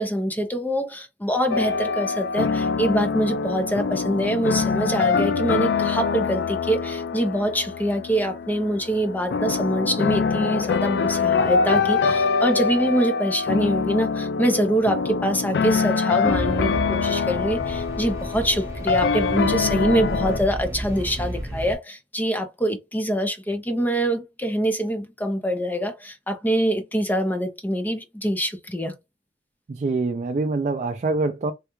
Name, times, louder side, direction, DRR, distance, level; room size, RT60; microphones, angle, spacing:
voice 1, 0.0-28.9, equal, 10° left, 0.5 m, -24 dB
sound 1, 1.5-20.4, left 5 dB, 65° left, 0.3 m, -24 dB
sound 2, 16.3-21.8, right 1 dB, 15° right, 1.0 m, -32 dB
voice 2, 29.7-31.5, right 3 dB, 40° right, 0.3 m, -25 dB
3.2 x 2.3 x 3.0 m
head